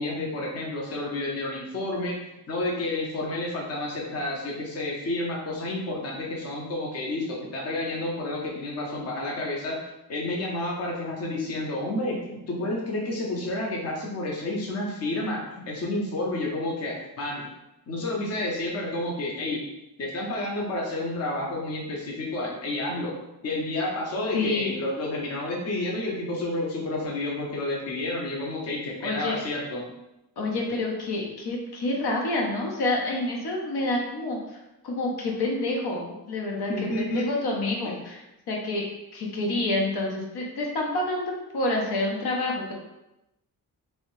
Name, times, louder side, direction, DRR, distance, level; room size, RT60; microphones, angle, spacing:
voice 1, 0.0-2.2 2.5-9.8 10.1-17.5 17.9-19.7 20.0-23.2 23.4-29.9 36.7-37.3, left 2 dB, 40° left, -2 dB, 0.7 m, -30 dB
voice 2, 24.3-24.8 29.0-29.4 30.4-38.2 38.5-42.7, left 2 dB, 80° left, -1 dB, 0.8 m, -28 dB
3.1 x 2.7 x 3.1 m, 0.93 s
wide cardioid pair, 160°, 38 cm